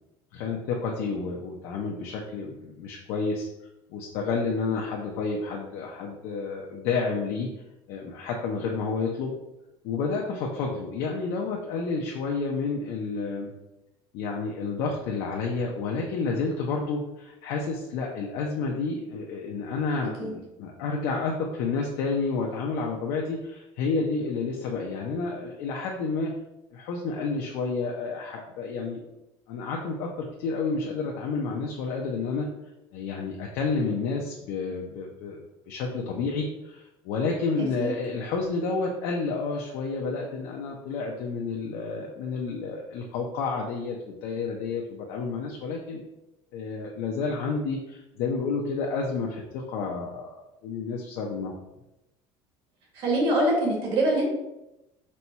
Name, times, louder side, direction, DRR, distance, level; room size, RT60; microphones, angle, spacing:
voice 1, 0.3-3.5 3.9-7.5 7.9-9.3 9.8-13.5 14.1-26.3 26.7-29.0 29.5-32.5 32.9-35.4 35.7-46.0 46.5-51.5, left 4 dB, 60° left, 0 dB, 0.5 m, -30 dB
voice 2, 52.9-54.3, right 1 dB, 50° right, -1 dB, 1.2 m, -24 dB
4.2 x 2.3 x 4.1 m, 0.93 s
cardioid pair, 180°, 11 cm